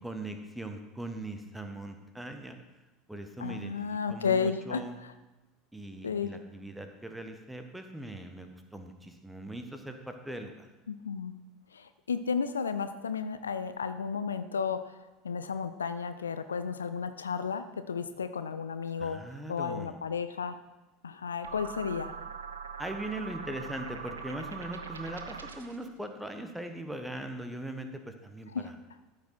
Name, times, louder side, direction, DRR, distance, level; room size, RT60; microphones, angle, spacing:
voice 1, 0.0-2.6 3.1-3.7 4.1-5.0 5.7-10.7 19.0-20.0 22.8-28.7, right 1 dB, 5° right, 6 dB, 1.2 m, -40 dB
voice 2, 3.4-4.8 6.0-6.3 10.9-11.3 11.7-15.0 15.2-19.2 19.5-20.5 21.0-22.1 28.5-28.7, left 6 dB, 75° left, 11 dB, 0.5 m, -33 dB
sound 1, 21.4-25.8, right 5 dB, 75° right, 0.8 m, -42 dB
13.5 x 6.2 x 4.4 m, 1.1 s
figure-of-eight pair, 75°, 0 cm